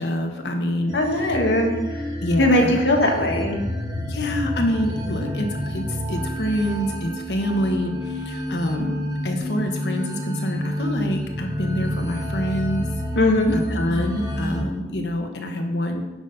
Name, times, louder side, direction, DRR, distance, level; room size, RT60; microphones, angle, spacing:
voice 1, 0.0-0.9 1.3-1.4 2.2-2.8 4.1-12.8 13.5-16.0, equal, 70° left, 3 dB, 1.3 m, -26 dB
voice 2, 0.9-2.1 2.4-3.6 13.1-13.6, left 1 dB, 90° left, 1 dB, 2.0 m, -20 dB
sound 1, 0.9-14.6, equal, 25° right, 2.1 m, -29 dB
10.5 x 6.2 x 5.7 m, 1.1 s
head